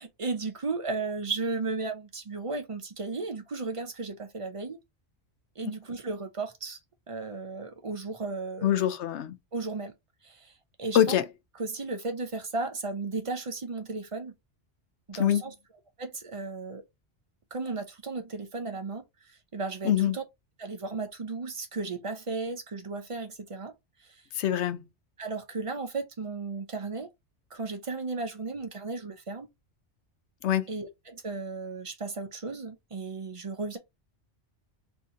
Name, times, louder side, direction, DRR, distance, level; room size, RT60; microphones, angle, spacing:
voice 1, 0.0-4.8 5.6-6.8 7.1-8.8 9.5-9.9 10.2-10.5 10.8-11.2 11.6-14.3 15.1-15.5 16.0-16.8 17.5-20.2 20.6-23.7 24.1-24.2 25.2-27.1 27.5-29.5 30.7-33.8, right 3 dB, 35° right, 0.6 m, -35 dB
voice 2, 8.6-9.3 10.9-11.2 15.2-15.4 19.8-20.2 24.4-24.8 30.4-30.7, left 11 dB, 80° left, 0.9 m, -24 dB
2.9 x 2.6 x 3.7 m
omnidirectional pair, 1.2 m